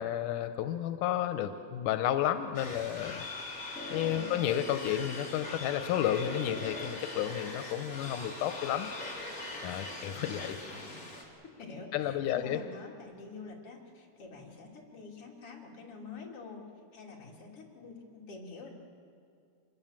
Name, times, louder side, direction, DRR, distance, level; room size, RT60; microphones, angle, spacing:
voice 1, 0.0-3.3 3.9-8.9 9.6-10.6 11.9-12.6, left 11 dB, 90° left, 9 dB, 2.4 m, -32 dB
sound 1, 2.5-11.2, left 2 dB, 25° left, 3.6 m, -41 dB
voice 2, 10.1-10.5 10.8-11.1 11.6-18.7, left 4 dB, 45° left, -2 dB, 3.9 m, -47 dB
26.5 x 22.0 x 7.4 m, 2.4 s
omnidirectional pair, 3.6 m